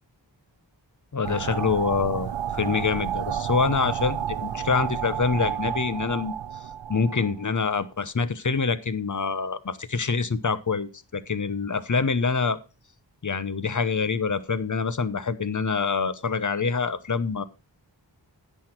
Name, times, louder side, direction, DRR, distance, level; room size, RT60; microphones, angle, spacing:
voice 1, 1.1-6.4 6.9-12.6 13.2-17.4, left 5 dB, 45° left, 14 dB, 0.9 m, -26 dB
sound 1, 1.2-7.6, right 9 dB, 80° right, 0.6 m, -31 dB
10.0 x 8.0 x 4.4 m, 0.31 s
wide cardioid pair, 45°, 44 cm